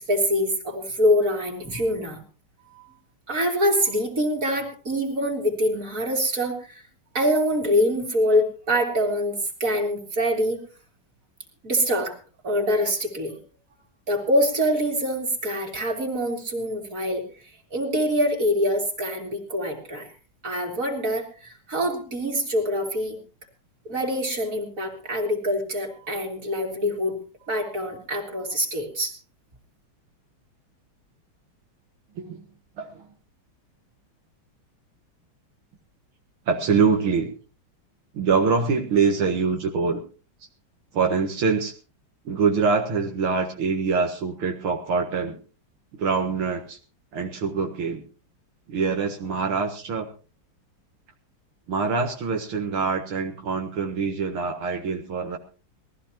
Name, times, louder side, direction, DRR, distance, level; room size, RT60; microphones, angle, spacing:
voice 1, 0.0-2.2 2.7-2.9 3.3-6.8 7.1-10.6 11.6-12.2 12.4-13.4 14.1-17.2 17.7-20.1 20.4-23.2 23.8-27.1 27.5-29.1, equal, 40° right, 1 dB, 3.5 m, -25 dB
voice 2, 32.8-33.1 36.5-37.3 38.1-40.0 40.9-41.7 42.3-45.4 45.9-46.8 47.1-48.0 48.7-50.1 51.7-55.4, right 5 dB, 80° right, 2 dB, 2.4 m, -24 dB
21.5 x 15.0 x 2.9 m, 0.35 s
omnidirectional pair, 2.3 m